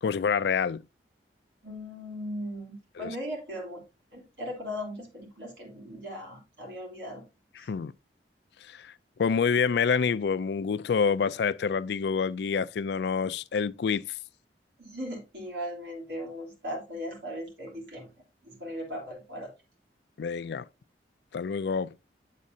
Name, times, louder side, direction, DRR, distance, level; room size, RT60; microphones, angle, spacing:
voice 1, 0.0-0.8 3.0-3.2 7.6-7.9 8.7-8.9 9.2-14.1 20.2-20.6 21.3-21.9, left 6 dB, 70° left, 0.4 m, -27 dB
voice 2, 1.6-3.8 4.1-7.2 7.6-7.7 14.8-18.1 18.4-19.5, equal, 80° right, 3.4 m, -38 dB
8.4 x 7.4 x 2.7 m
head